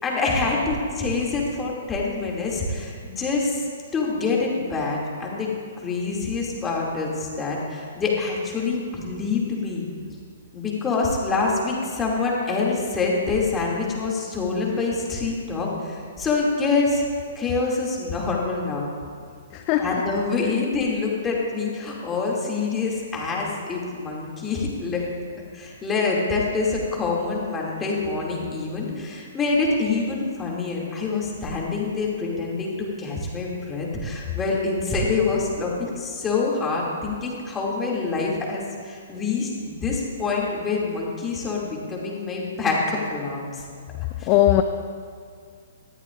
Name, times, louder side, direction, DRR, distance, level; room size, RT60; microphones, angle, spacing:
voice 1, 0.0-3.7 3.9-5.5 5.8-9.9 10.5-17.0 17.3-18.8 19.8-25.0 25.5-43.6 44.2-44.3, left 4 dB, 15° left, -3 dB, 2.6 m, -26 dB
voice 2, 19.5-19.9 44.3-44.6, left 14 dB, 30° left, 7 dB, 0.5 m, -18 dB
19.0 x 13.5 x 2.6 m, 2.1 s
figure-of-eight pair, 120°, 0 cm